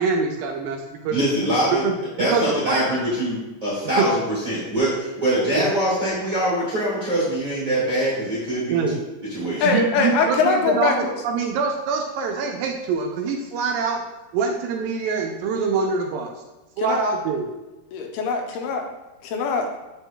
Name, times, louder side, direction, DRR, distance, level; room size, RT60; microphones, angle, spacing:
voice 1, 0.0-1.2 1.8-2.0 2.3-2.9 3.8-3.9 8.7-8.9 9.6-14.0 14.3-16.3 16.8-17.5, right 5 dB, 80° right, 2 dB, 2.1 m, -24 dB
voice 2, 1.1-1.8 2.2-4.9 5.1-8.8 9.2-9.7, right 1 dB, 45° right, -8 dB, 1.1 m, -23 dB
voice 3, 9.6-11.2 16.8-17.0 17.9-18.8 19.2-19.7, left 4 dB, 85° left, 3 dB, 2.7 m, -22 dB
7.0 x 6.2 x 2.2 m, 1.1 s
omnidirectional pair, 4.3 m